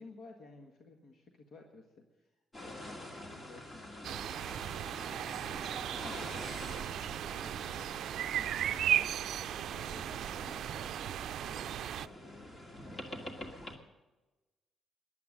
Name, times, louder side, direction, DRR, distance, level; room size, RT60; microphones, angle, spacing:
voice 1, 0.0-4.3 5.1-9.1 9.6-11.0 11.3-13.5, left 3 dB, 65° left, 3 dB, 1.6 m, -55 dB
sound 1, 2.5-13.8, left 1 dB, 30° left, 2.3 m, -47 dB
sound 2, 4.0-12.1, right 11 dB, 75° right, 0.4 m, -36 dB
14.5 x 11.0 x 6.5 m, 1.1 s
cardioid pair, 90°, 0 cm